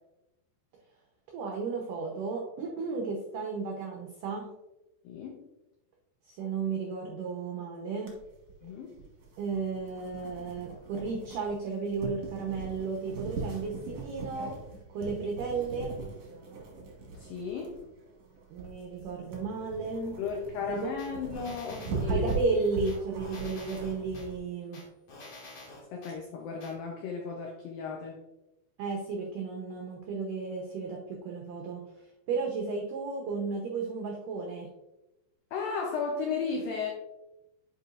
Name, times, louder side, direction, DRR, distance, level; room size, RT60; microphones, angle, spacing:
voice 1, 1.3-4.5 6.3-8.1 9.4-14.5 14.9-16.0 18.5-20.2 20.7-20.9 22.0-24.8 28.8-34.7, right 4 dB, 85° right, 0 dB, 1.8 m, -34 dB
voice 2, 5.0-5.4 8.6-9.0 17.1-17.8 20.2-22.3 25.9-28.2 35.5-36.9, left 5 dB, 85° left, 1 dB, 2.0 m, -35 dB
sound 1, 8.1-24.4, right 3 dB, 60° right, 1.6 m, -40 dB
sound 2, 21.0-22.4 22.9-24.3 24.7-26.2 26.6-26.7, left 2 dB, 50° left, 3.3 m, -48 dB
9.5 x 4.7 x 2.5 m, 0.96 s
omnidirectional pair, 5.0 m